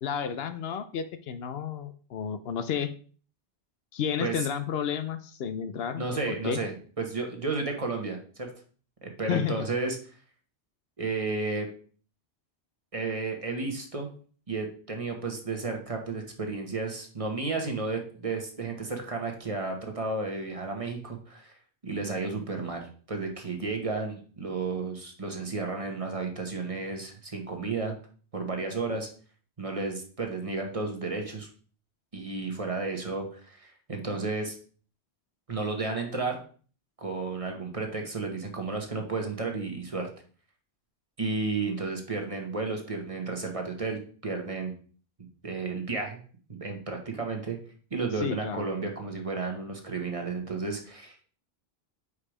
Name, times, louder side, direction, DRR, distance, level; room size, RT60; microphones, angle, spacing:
voice 1, 0.0-2.9 3.9-6.6 9.3-9.7 48.2-48.7, left 8 dB, 75° left, 10 dB, 0.8 m, -31 dB
voice 2, 6.0-8.5 9.0-10.0 11.0-11.7 12.9-14.1 14.5-21.5 21.8-27.9 28.3-29.1 29.6-31.5 32.1-34.6 35.5-36.4 37.0-40.1 41.2-44.7 45.4-46.2 46.5-47.6 47.9-51.2, right 3 dB, 35° right, 2 dB, 1.1 m, -32 dB
4.9 x 4.7 x 4.9 m, 0.42 s
omnidirectional pair, 1.1 m